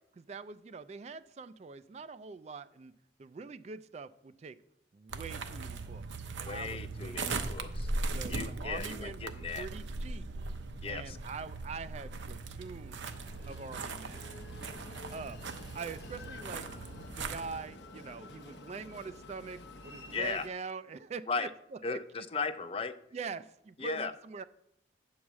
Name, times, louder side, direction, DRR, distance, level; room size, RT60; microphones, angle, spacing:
voice 1, 0.2-2.9 3.2-4.6 4.9-6.0 6.4-7.4 8.1-10.3 10.9-13.1 13.5-14.3 15.1-15.4 15.7-16.6 17.2-22.3 23.1-24.4, right 5 dB, 35° right, 13 dB, 0.3 m, -44 dB
sound 1, 5.1-17.6, right 3 dB, 80° right, 0.8 m, -39 dB
voice 2, 6.4-7.9 8.3-9.7 10.8-11.2 20.1-20.4 21.3-21.5 21.8-23.0 23.8-24.1, left 4 dB, 30° left, 11 dB, 0.4 m, -36 dB
Train, 13.1-20.5, left 2 dB, 65° left, 0.8 m, -49 dB
9.1 x 4.8 x 7.2 m, 0.76 s
head